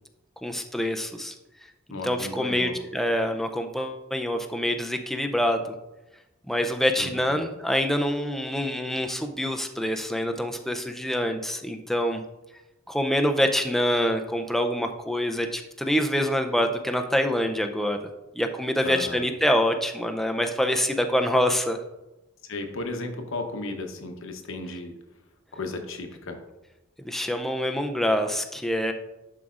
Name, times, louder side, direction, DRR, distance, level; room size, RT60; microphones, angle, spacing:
voice 1, 0.4-1.3 2.0-5.6 6.5-12.2 12.9-18.0 18.4-21.8 27.0-28.9, equal, ahead, 5 dB, 0.4 m, -25 dB
voice 2, 1.9-2.8 7.0-7.5 18.8-19.3 22.4-24.9 25.5-26.4, left 2 dB, 65° left, 5 dB, 0.9 m, -34 dB
11.0 x 4.8 x 2.5 m, 1.0 s
head